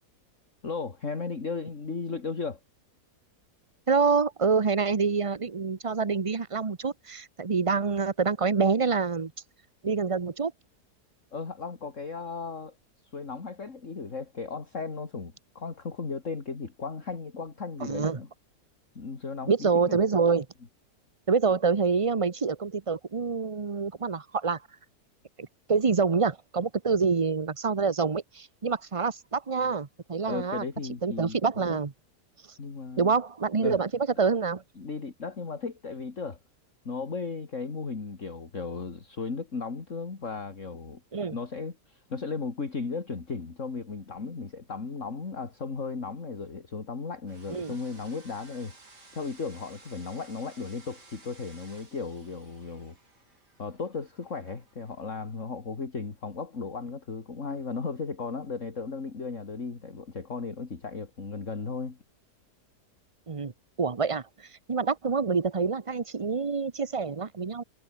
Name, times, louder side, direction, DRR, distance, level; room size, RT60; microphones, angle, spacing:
voice 1, 0.6-2.6 11.3-12.8 13.1-18.3 18.9-20.0 30.3-31.8 32.6-33.2 33.6-33.8 34.8-36.4 36.8-41.0 41.3-48.7 49.1-53.0 53.6-62.0, left 4 dB, 50° left, 2.8 m, -36 dB
voice 2, 3.9-9.3 9.8-10.5 17.8-18.2 19.5-20.5 21.3-24.6 25.4-30.6 31.0-31.9 33.0-34.6 41.1-41.4 47.5-47.7 63.3-63.5 63.8-67.6, right 5 dB, 25° right, 0.7 m, -26 dB
sound 1, 47.3-55.4, right 2 dB, 90° right, 6.3 m, -56 dB
omnidirectional pair, 1.7 m